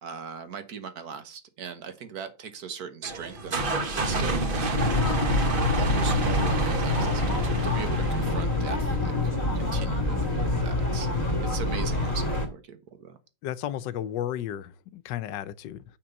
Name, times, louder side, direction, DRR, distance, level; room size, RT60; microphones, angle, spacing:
voice 1, 0.0-4.8 5.8-13.2, right 7 dB, 60° right, 1.5 m, -40 dB
sound 1, 3.0-8.6, right 1 dB, 35° right, 1.1 m, -28 dB
sound 2, 4.8-12.5, left 2 dB, 20° left, 2.0 m, -27 dB
voice 2, 13.4-15.8, left 11 dB, 80° left, 1.3 m, -33 dB
6.8 x 5.9 x 5.3 m
omnidirectional pair, 1.9 m